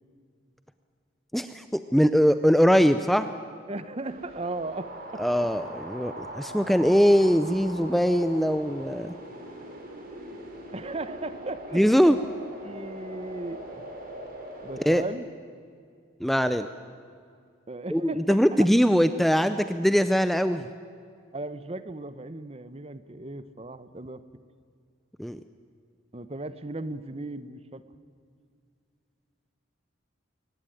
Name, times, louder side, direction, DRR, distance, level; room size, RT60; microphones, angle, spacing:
voice 1, 1.3-3.3 5.2-9.1 11.7-12.2 14.9-15.0 16.2-16.7 17.9-20.7 25.2-25.4, equal, ahead, 10 dB, 0.5 m, -22 dB
voice 2, 3.7-5.3 10.7-12.1 12.6-13.9 14.6-15.3 17.7-18.4 21.3-24.2 26.1-27.8, right 2 dB, 30° right, 13 dB, 0.9 m, -36 dB
sound 1, 4.1-14.9, right 1 dB, 45° right, 4.2 m, -41 dB
23.0 x 18.5 x 9.3 m, 2.3 s
head